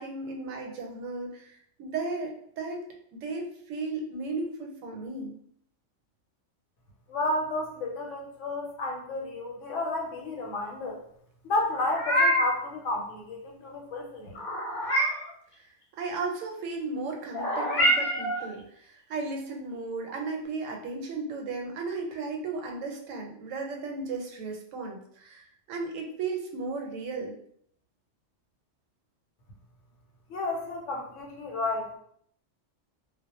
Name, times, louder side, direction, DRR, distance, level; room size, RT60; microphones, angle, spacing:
voice 1, 0.0-2.9 3.1-5.4 15.5-15.7 16.0-27.4, right 3 dB, 85° right, 2 dB, 0.9 m, -35 dB
voice 2, 7.1-11.0 11.4-14.4 30.3-32.0, left 2 dB, 80° left, 1 dB, 0.9 m, -32 dB
Meow, 11.7-12.6 14.3-15.3 17.3-18.4, equal, 45° left, 0.7 m, -26 dB
2.2 x 2.0 x 2.9 m, 0.66 s
omnidirectional pair, 1.3 m